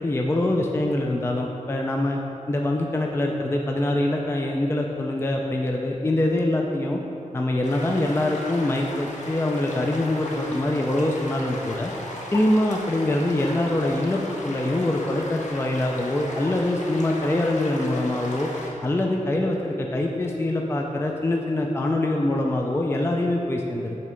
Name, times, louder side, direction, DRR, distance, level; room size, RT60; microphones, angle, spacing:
voice 1, 0.0-2.2 2.5-7.0 7.3-11.9 12.3-18.5 18.8-24.0, left 1 dB, 20° left, 0 dB, 0.4 m, -24 dB
sound 1, 7.6-18.7, left 1 dB, 65° left, 0.9 m, -36 dB
6.7 x 3.2 x 5.0 m, 2.9 s
wide cardioid pair, 90°, 13 cm